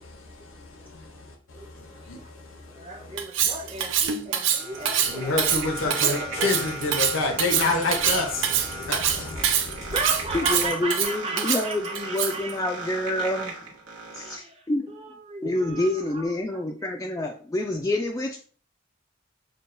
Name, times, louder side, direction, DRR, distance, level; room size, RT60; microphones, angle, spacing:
voice 1, 0.0-3.2 4.7-9.9, left 3 dB, 80° left, 0.8 m, -29 dB
voice 2, 1.5-2.3 2.7-6.5 9.9-12.6 14.1-16.6 17.2-17.3, right 2 dB, 30° right, 0.8 m, -36 dB
Cutlery silverware, 3.2-12.5, right 8 dB, 65° right, 0.5 m, -25 dB
sound 1, 3.9-14.4, right 2 dB, 85° right, 1.2 m, -38 dB
voice 3, 10.3-13.6 14.1-14.9 15.4-18.4, left 1 dB, 15° left, 0.3 m, -27 dB
6.2 x 2.3 x 2.5 m
head